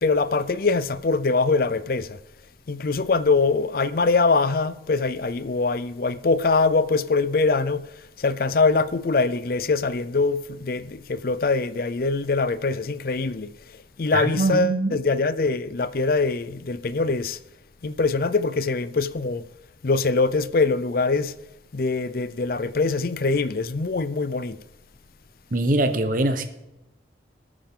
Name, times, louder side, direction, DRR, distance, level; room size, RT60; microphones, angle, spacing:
voice 1, 0.0-2.2 2.7-7.9 8.2-17.4 17.8-19.5 19.8-21.3 21.7-24.6, left 3 dB, 50° left, 0.5 m, -23 dB
voice 2, 14.1-14.9 25.5-26.5, right 2 dB, 45° right, 1.1 m, -22 dB
20.0 x 8.7 x 3.8 m
head